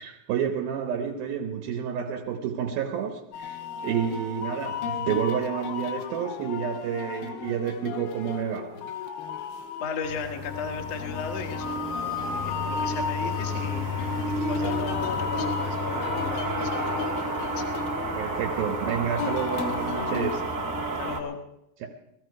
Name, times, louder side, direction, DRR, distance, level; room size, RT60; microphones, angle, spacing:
voice 1, 0.0-8.9 18.2-20.6 21.8-21.9, right 8 dB, 80° right, 2 dB, 2.9 m, -30 dB
sound 1, 3.3-20.4, left 6 dB, 85° left, 3.0 m, -34 dB
voice 2, 9.8-13.9 14.3-17.6 21.0-21.4, left 6 dB, 55° left, 4 dB, 2.0 m, -36 dB
sound 2, 10.0-21.2, right 1 dB, 40° right, 2.0 m, -31 dB
19.0 x 14.0 x 4.8 m, 0.84 s
omnidirectional pair, 4.2 m